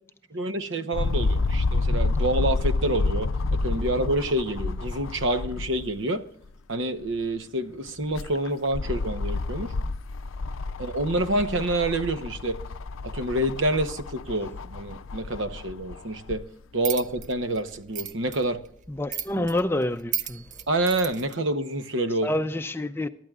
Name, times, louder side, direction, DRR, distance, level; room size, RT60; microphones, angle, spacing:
voice 1, 0.3-6.2 6.7-9.7 10.8-12.6 13.0-16.4 16.7-18.6 19.4-19.5 20.7-22.3, right 1 dB, 70° right, 1.0 m, -27 dB
sound 1, 0.9-6.0 6.4-6.5 7.9-16.4 17.2-17.3, left 3 dB, 85° left, 0.5 m, -29 dB
sound 2, 16.8-21.3, right 8 dB, 35° right, 0.6 m, -36 dB
voice 2, 18.9-20.7 22.2-23.1, left 1 dB, 10° left, 0.4 m, -28 dB
23.0 x 12.0 x 2.4 m
head